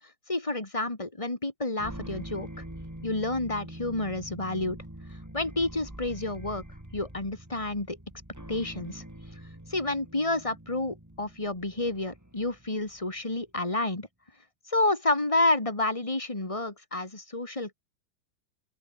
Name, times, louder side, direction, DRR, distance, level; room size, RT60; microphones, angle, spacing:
voice 1, 0.3-2.6 3.0-4.8 5.1-6.6 6.9-8.0 8.5-9.0 9.7-14.1 14.7-17.7, left 2 dB, 20° left, 0.8 m, -29 dB
sound 1, 1.8-13.2, right 1 dB, 5° right, 2.1 m, -44 dB
open air
omnidirectional pair, 5.2 m